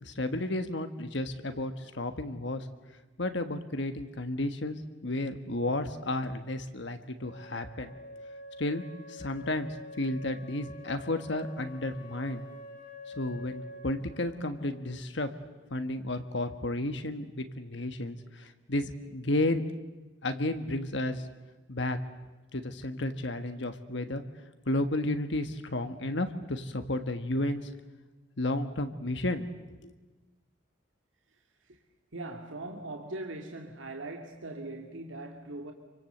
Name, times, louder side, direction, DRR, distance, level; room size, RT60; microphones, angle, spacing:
voice 1, 0.0-2.7 3.2-7.9 8.6-8.8 9.1-9.7 10.0-12.4 13.1-15.3 15.7-19.6 20.2-21.2 21.7-22.0 22.5-24.2 24.7-27.7 28.4-29.5 29.8-29.9, left 1 dB, 70° left, 8 dB, 1.5 m, -32 dB
Wind instrument woodwind instrument, 7.2-14.9, left 1 dB, 40° left, 3.2 m, -47 dB
voice 2, 32.1-35.7, right 2 dB, 85° right, 3 dB, 2.2 m, -40 dB
27.5 x 24.5 x 8.0 m, 1.2 s
head